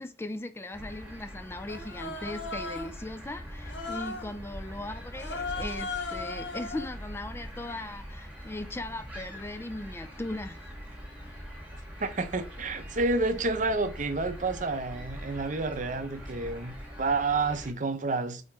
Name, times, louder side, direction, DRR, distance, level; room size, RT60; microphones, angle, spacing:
voice 1, 0.0-10.6, left 2 dB, 10° left, 0.3 m, -38 dB
sound 1, 0.7-17.7, equal, 10° right, 1.6 m, -43 dB
Human voice, 1.7-3.0 3.6-4.3 5.1-6.9, left 3 dB, 65° left, 1.3 m, -37 dB
voice 2, 12.0-18.4, right 3 dB, 40° right, 0.7 m, -29 dB
4.7 x 4.3 x 4.7 m
head